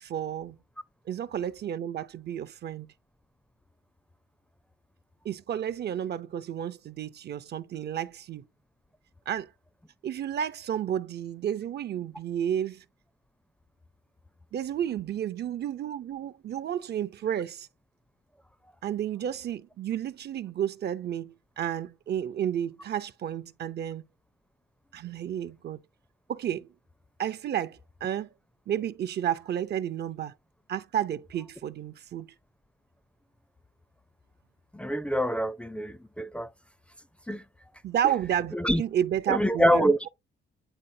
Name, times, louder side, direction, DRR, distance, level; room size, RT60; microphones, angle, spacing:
voice 1, 0.0-0.6 1.1-2.9 5.2-8.5 9.3-9.5 10.0-12.8 14.5-17.7 18.8-24.0 24.9-25.8 26.3-26.7 27.2-28.3 28.7-30.3 30.7-32.3 37.8-40.1, right 10 dB, 55° right, 0.6 m, -31 dB
voice 2, 34.7-36.5 37.3-37.4 38.5-38.8 39.3-40.1, equal, 5° left, 0.5 m, -25 dB
9.0 x 3.9 x 2.7 m
cardioid pair, 90°, 20 cm